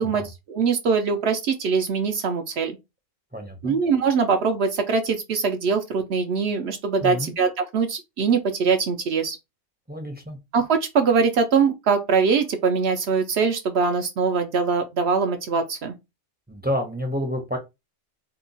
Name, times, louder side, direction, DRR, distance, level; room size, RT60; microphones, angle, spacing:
voice 1, 0.0-2.7 3.6-9.4 10.5-16.0, right 5 dB, 65° right, 0.7 m, -22 dB
voice 2, 3.3-3.8 7.0-7.3 9.9-10.4 16.5-17.6, equal, 10° right, 0.5 m, -29 dB
2.8 x 2.2 x 3.9 m
omnidirectional pair, 1.4 m